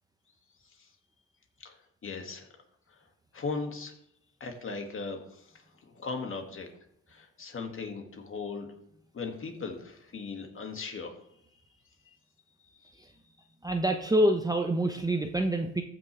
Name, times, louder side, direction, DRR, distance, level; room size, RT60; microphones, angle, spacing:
voice 1, 2.0-2.5 2.9-3.0 3.3-3.9 4.4-6.7 7.1-8.7 9.1-11.3 12.1-12.2 12.7-12.9, left 4 dB, 45° left, 4 dB, 2.1 m, -38 dB
voice 2, 13.6-15.8, right 1 dB, 10° right, 5 dB, 0.9 m, -26 dB
14.5 x 6.1 x 3.4 m, 0.73 s
cardioid pair, 90°, 30 cm